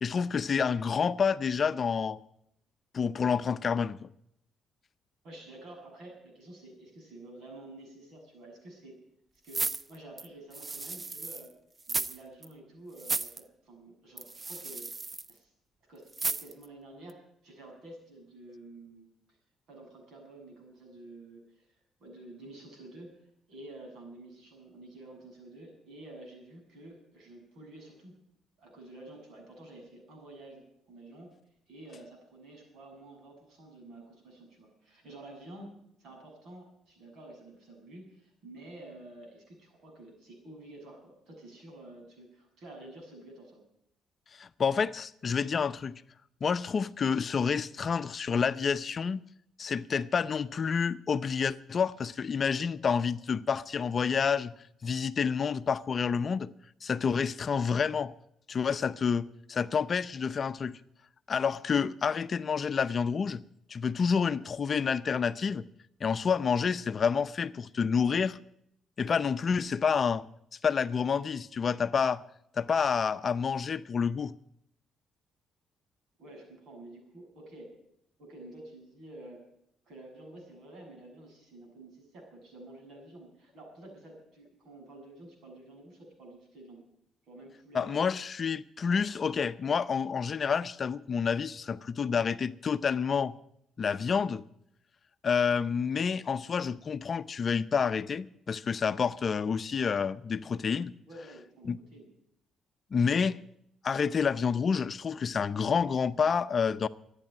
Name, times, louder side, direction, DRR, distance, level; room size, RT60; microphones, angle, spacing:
voice 1, 0.0-2.2 2.9-4.1 44.4-46.0 46.4-49.2 49.6-54.5 54.8-56.5 56.8-58.1 58.5-60.8 61.3-63.4 63.7-65.6 66.0-68.4 69.0-70.2 70.6-72.2 72.6-74.3 87.7-93.3 93.8-94.4 95.2-100.9 101.7-101.8 102.9-103.4 103.8-106.9, left 6 dB, 45° left, 0.6 m, -28 dB
voice 2, 5.2-9.0 9.4-11.5 11.9-14.9 15.3-15.5 15.9-19.1 19.7-28.2 28.6-31.3 31.7-43.6 76.2-77.7 78.2-79.4 79.9-86.8 87.3-88.0 101.1-102.1, right 1 dB, 70° right, 6.9 m, -50 dB
sound 1, 9.5-11.5 11.8-12.2 12.4-12.5 13.0-13.4 14.2-15.3 16.1-16.6 17.1-17.2, right 3 dB, 30° right, 0.7 m, -34 dB
14.0 x 9.8 x 8.6 m
cardioid pair, 95°, 0 cm